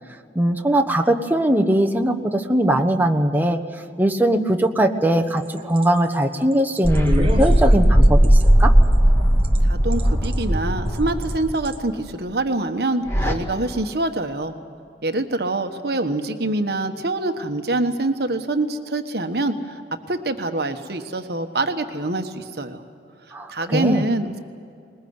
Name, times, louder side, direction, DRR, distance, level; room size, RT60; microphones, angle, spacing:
voice 1, 0.3-3.6 4.0-8.7 23.3-24.1, right 1 dB, 10° right, 2 dB, 1.2 m, -20 dB
sound 1, 5.4-9.6 9.9-10.4 10.9-11.3 11.7-11.8, equal, 30° right, 1.1 m, -32 dB
sound 2, 6.8-11.7 13.1-13.3, equal, 15° left, 2.0 m, -17 dB
voice 2, 9.6-14.5 15.0-19.8 20.1-22.8 23.5-24.4, right 2 dB, 60° right, 6 dB, 1.3 m, -25 dB
21.0 x 20.5 x 9.6 m, 2.4 s
head